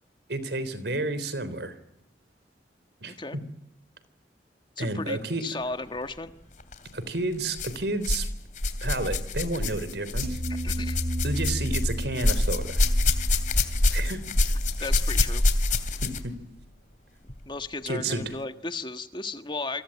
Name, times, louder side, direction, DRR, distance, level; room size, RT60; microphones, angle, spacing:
voice 1, 0.3-1.7 3.0-3.4 4.8-5.5 6.9-8.3 8.8-10.4 11.2-12.8 13.9-14.2 16.0-16.3 17.9-18.2, right 2 dB, 75° right, 14 dB, 3.6 m, -31 dB
voice 2, 3.0-3.4 4.8-6.3 10.6-11.0 14.8-15.4 17.4-19.8, left 3 dB, 25° left, 8 dB, 1.5 m, -35 dB
sound 1, 6.6-6.8 7.5-8.3 8.5-16.3 17.3-17.4 18.2-18.3, left 2 dB, 45° left, 2.8 m, -26 dB
sound 2, 10.2-15.4, equal, 60° right, 2.3 m, -34 dB
28.5 x 23.5 x 8.7 m, 0.80 s
head